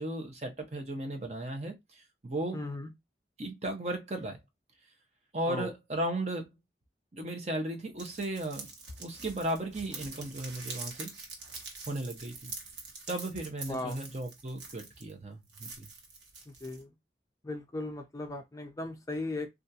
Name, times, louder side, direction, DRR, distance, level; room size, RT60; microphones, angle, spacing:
voice 1, 0.0-2.6 3.4-4.4 5.3-6.5 7.1-8.7 9.0-11.1 11.9-12.5 13.1-15.9, right 1 dB, 40° right, 0.7 m, -35 dB
voice 2, 2.5-2.9 5.5-5.7 13.7-14.0 16.5-16.9 17.4-19.5, left 2 dB, 20° left, 0.4 m, -37 dB
sound 1, 8.0-15.1 15.5-16.8, right 3 dB, 85° right, 1.1 m, -45 dB
3.4 x 2.4 x 2.7 m
head